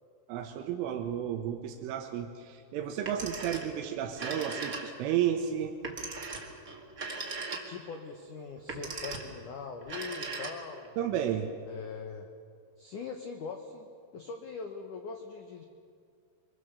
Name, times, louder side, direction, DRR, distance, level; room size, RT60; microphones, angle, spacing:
voice 1, 0.3-5.7 11.0-11.5, right 9 dB, 85° right, 4 dB, 3.6 m, -32 dB
Telephone, 2.9-3.8 4.1-5.1 5.8-7.9 8.6-9.4 9.8-10.8, right 3 dB, 50° right, 1.0 m, -39 dB
voice 2, 7.5-11.0 11.6-12.3 12.8-15.6, left 5 dB, 85° left, 4 dB, 1.7 m, -42 dB
25.0 x 23.0 x 7.0 m, 2.3 s
omnidirectional pair, 5.7 m